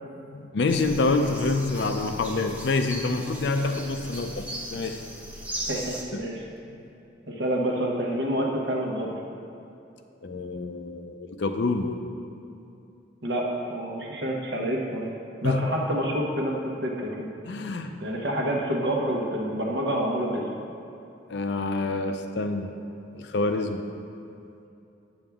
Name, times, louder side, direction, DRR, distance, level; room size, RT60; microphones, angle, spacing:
voice 1, 0.0-5.0 6.1-6.3 10.2-11.9 15.4-15.6 17.4-17.9 21.3-22.7 23.1-23.9, left 3 dB, 60° left, 6 dB, 0.5 m, -27 dB
sound 1, 0.7-6.0, right 1 dB, 10° right, 0.7 m, -38 dB
voice 2, 5.7-6.4 7.3-9.1 13.2-15.1 15.4-17.3 18.0-20.4, right 1 dB, 70° right, -1 dB, 1.1 m, -28 dB
8.6 x 7.2 x 3.5 m, 2.8 s
head